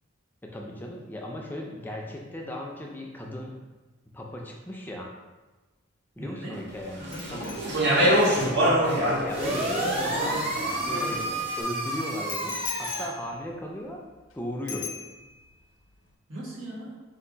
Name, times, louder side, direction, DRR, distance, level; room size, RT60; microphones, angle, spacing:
voice 1, 0.4-3.6 4.1-5.1 6.2-7.5 8.3-14.0 14.3-14.9, left 1 dB, 10° left, -1 dB, 0.4 m, -37 dB
voice 2, 6.2-6.7 7.0-7.8 16.3-16.9, right 2 dB, 90° right, -5 dB, 1.3 m, -39 dB
Speech, 7.0-11.4, equal, 60° right, 0.6 m, -25 dB
Bicycle bell, 7.1-10.9 12.3-14.3 14.7-15.5 15.8-16.1, left 7 dB, 70° left, 0.6 m, -41 dB
sound 1, 9.3-13.0, right 1 dB, 30° right, 0.9 m, -30 dB
4.5 x 2.5 x 3.9 m, 1.2 s
head